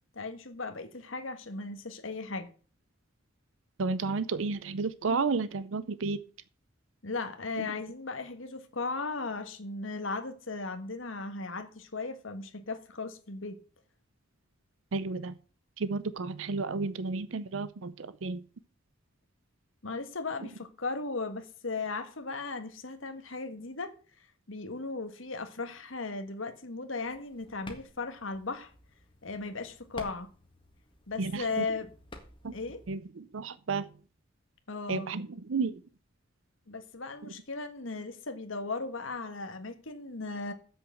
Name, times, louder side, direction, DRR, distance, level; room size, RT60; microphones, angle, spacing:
voice 1, 0.1-2.5 7.0-13.6 19.8-23.9 24.5-28.7 29.2-30.3 31.1-31.9 32.5-32.8 34.7-35.1 36.7-40.5, left 3 dB, 80° left, 1.6 m, -37 dB
voice 2, 3.8-6.2 7.6-7.7 14.9-15.3 15.8-18.4 31.2-31.6 32.4-32.5 32.9-33.9 34.9-35.8, right 4 dB, 75° right, 0.6 m, -32 dB
sound 1, 27.0-32.9, left 1 dB, 25° left, 1.8 m, -51 dB
7.9 x 6.6 x 7.7 m
head